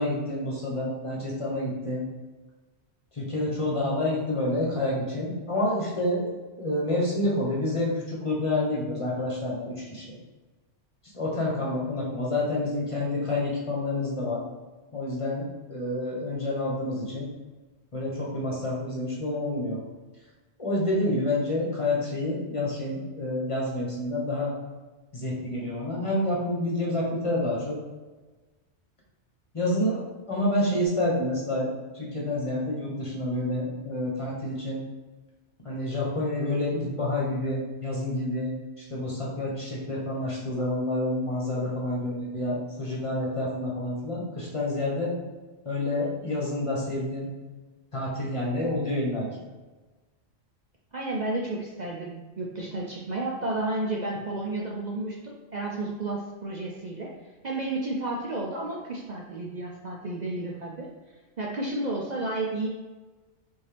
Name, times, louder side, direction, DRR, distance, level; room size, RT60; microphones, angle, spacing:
voice 1, 0.0-2.0 3.1-6.3 6.6-10.1 11.1-14.4 14.9-17.3 17.9-19.8 20.6-24.5 25.1-27.8 29.5-34.8 35.6-38.5 38.8-45.1 45.6-47.3 47.9-49.3, left 1 dB, 30° left, -5 dB, 1.2 m, -28 dB
voice 2, 50.9-57.2 57.4-60.9 61.4-62.7, right 2 dB, 50° right, -2 dB, 0.6 m, -32 dB
5.3 x 2.7 x 3.3 m, 1.2 s
omnidirectional pair, 1.2 m